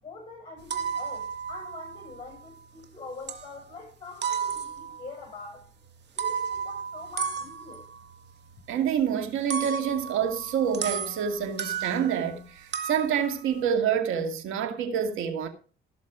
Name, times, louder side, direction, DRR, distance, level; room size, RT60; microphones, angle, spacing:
voice 1, 0.0-5.7 6.2-7.9, left 3 dB, 25° left, 6.1 m, -44 dB
sound 1, 0.6-2.9 3.3-3.8 4.2-5.1 6.0-12.4 12.7-13.7, right 6 dB, 60° right, 1.9 m, -34 dB
voice 2, 8.7-15.5, right 8 dB, 90° right, 2.3 m, -27 dB
16.0 x 6.6 x 5.0 m
cardioid pair, 90°, 20 cm